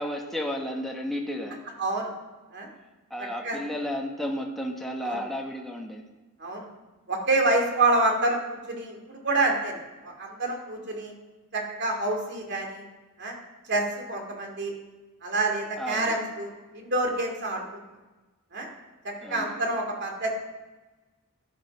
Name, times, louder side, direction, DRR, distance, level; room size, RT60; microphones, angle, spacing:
voice 1, 0.0-1.6 3.1-6.0 15.8-16.2 19.2-19.5, equal, ahead, 0 dB, 1.4 m, -32 dB
voice 2, 1.8-2.1 2.5-2.7 3.2-3.6 5.0-5.2 6.4-6.7 7.1-11.1 11.5-12.8 13.2-13.3 13.7-14.7 15.2-17.6 18.5-18.7 19.0-20.3, right 2 dB, 50° right, 2 dB, 2.6 m, -27 dB
13.5 x 11.0 x 5.5 m, 1.2 s
head